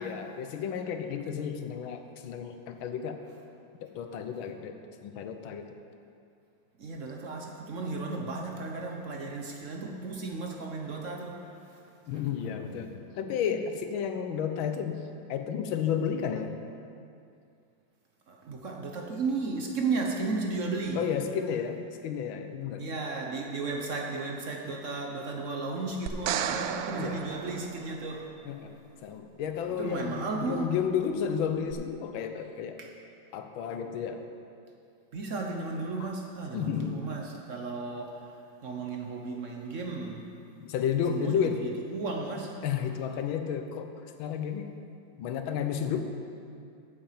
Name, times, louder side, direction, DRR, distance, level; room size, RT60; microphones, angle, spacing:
voice 1, 0.0-3.2 3.9-4.7 5.0-5.7 12.1-16.5 20.9-21.8 22.0-22.8 26.9-27.3 28.4-28.7 29.0-32.8 33.3-34.2 36.0-36.1 36.5-37.0 40.6-41.6 42.6-43.9 44.2-44.8 45.2-46.0, left 8 dB, 85° left, 6 dB, 1.6 m, -32 dB
voice 2, 6.8-11.4 12.1-12.2 18.3-21.0 22.8-28.3 29.7-30.7 32.8-32.9 35.1-38.2 38.6-40.3 41.1-42.6, right 3 dB, 55° right, 1 dB, 0.9 m, -34 dB
sound 1, 26.1-28.4 31.7-31.8, right 9 dB, 90° right, 0.8 m, -34 dB
8.7 x 7.4 x 7.2 m, 2.5 s
omnidirectional pair, 2.1 m